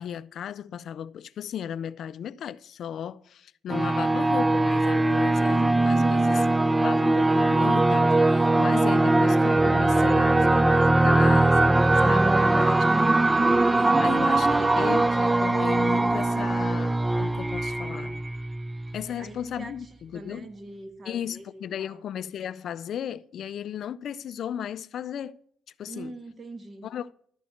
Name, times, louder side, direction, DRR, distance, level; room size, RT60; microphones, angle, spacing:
voice 1, 0.0-6.4 6.8-12.9 13.8-18.2 18.9-20.5 21.1-25.4 25.8-26.1 26.8-27.1, left 9 dB, 65° left, 0.3 m, -35 dB
sound 1, 3.7-19.0, right 2 dB, 15° right, 0.3 m, -21 dB
voice 2, 5.8-6.4 12.3-13.2 19.1-22.0 25.8-26.9, right 2 dB, 40° right, 1.3 m, -43 dB
12.0 x 4.2 x 8.2 m
cardioid pair, 90°, 0 cm